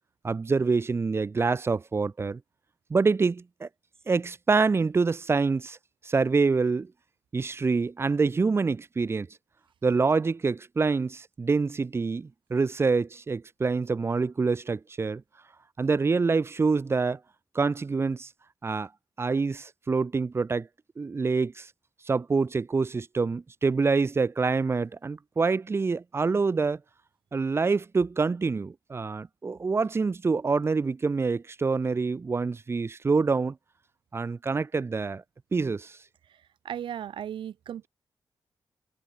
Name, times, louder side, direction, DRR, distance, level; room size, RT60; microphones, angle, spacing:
voice 1, 0.2-2.4 2.9-3.7 4.1-5.8 6.0-6.9 7.3-9.3 9.8-15.2 15.8-17.2 17.5-18.3 18.6-18.9 19.2-20.7 21.0-21.7 22.1-26.8 27.3-33.6 34.1-35.2 35.5-36.0, right 4 dB, 30° right, 0.6 m, -26 dB
voice 2, 36.6-37.9, right 10 dB, 75° right, 0.4 m, -36 dB
wide cardioid pair, 120°, 8 cm